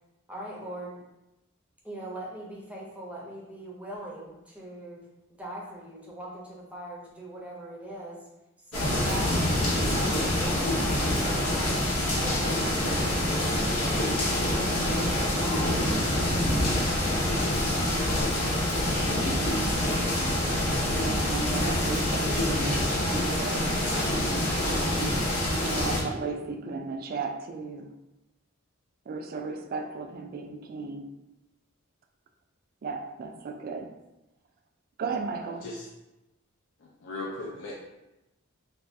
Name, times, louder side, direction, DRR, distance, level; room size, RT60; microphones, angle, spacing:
voice 1, 0.3-1.0 1.8-5.0 5.4-8.2 8.7-9.6 10.0-14.0 14.5-18.9, right 1 dB, 5° right, -4 dB, 0.6 m, -41 dB
sound 1, 8.7-26.0, left 1 dB, 85° left, 0.8 m, -26 dB
voice 2, 21.0-23.7 24.6-25.2 25.6-27.9 29.1-31.1 32.8-33.9 35.0-35.7, right 4 dB, 45° right, 4 dB, 0.3 m, -35 dB
voice 3, 36.8-37.7, left 2 dB, 60° left, -2 dB, 0.4 m, -37 dB
2.6 x 2.3 x 3.3 m, 0.95 s
head